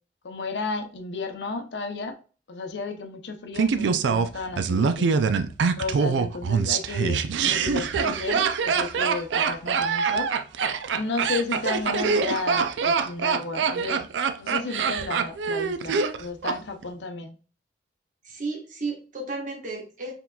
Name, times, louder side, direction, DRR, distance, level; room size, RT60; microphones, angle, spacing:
voice 1, 0.2-2.2 2.5-5.1 5.8-10.3 10.9-14.1 14.4-17.4, left 3 dB, 75° left, 0.7 m, -33 dB
Laughter, 3.6-16.6 16.8-16.9, right 5 dB, 85° right, 0.4 m, -24 dB
voice 2, 18.2-20.1, right 3 dB, 50° right, 1.2 m, -33 dB
4.5 x 3.7 x 2.2 m
head